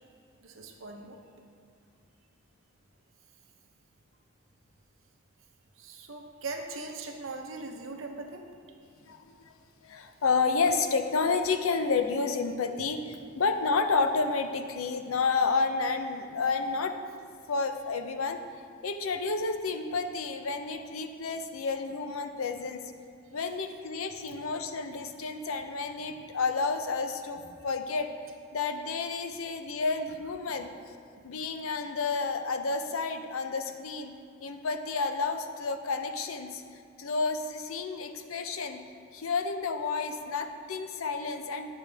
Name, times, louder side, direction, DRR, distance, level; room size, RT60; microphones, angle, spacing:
voice 1, 0.4-1.2 5.8-8.5, right 3 dB, 70° right, 3 dB, 0.8 m, -40 dB
voice 2, 9.0-9.5 9.8-17.0 17.5-18.4 18.8-22.8 23.3-28.1 28.5-30.7 31.2-34.1 34.4-36.6 37.0-38.8 39.1-41.7, left 4 dB, 85° left, 7 dB, 0.6 m, -30 dB
9.3 x 6.9 x 3.4 m, 2.3 s
head